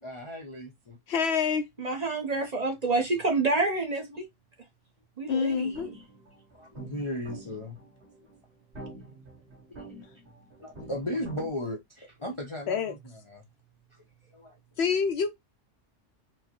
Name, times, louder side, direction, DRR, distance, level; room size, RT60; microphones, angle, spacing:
voice 1, 0.0-1.0 5.8-5.9 6.5-7.8 9.8-10.0 10.6-13.0 13.3-13.4 14.3-14.6, left 1 dB, 35° left, 0.5 m, -36 dB
voice 2, 1.1-1.6 5.3-5.9 12.7-12.9 14.8-15.3, left 6 dB, 65° left, 0.8 m, -26 dB
voice 3, 1.8-4.3 5.2-5.7, right 3 dB, 40° right, 0.7 m, -28 dB
sound 1, 5.5-11.5, right 2 dB, 60° right, 2.0 m, -47 dB
4.5 x 2.0 x 2.8 m
omnidirectional pair, 1.2 m